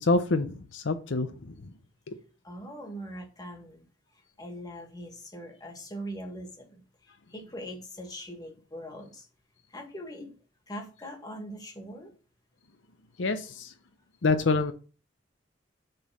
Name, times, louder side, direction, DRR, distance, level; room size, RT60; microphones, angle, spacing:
voice 1, 0.0-1.7 2.1-2.2 13.2-13.7 14.2-14.7, left 3 dB, 75° left, 0.7 m, -27 dB
voice 2, 2.4-3.9 4.1-9.3 9.7-10.3 10.7-12.1, equal, 20° left, 1.8 m, -42 dB
6.7 x 3.9 x 6.2 m
head